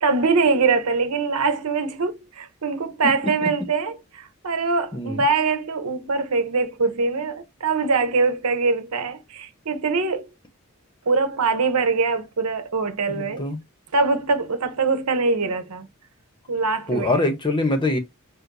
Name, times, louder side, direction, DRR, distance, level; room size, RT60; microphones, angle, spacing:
voice 1, 0.0-10.3 11.1-13.4 13.9-15.9 16.5-17.2, right 4 dB, 85° right, 0.9 m, -23 dB
voice 2, 4.9-5.2 13.1-13.6 16.9-18.0, left 1 dB, 20° left, 0.9 m, -24 dB
6.4 x 2.2 x 2.6 m
head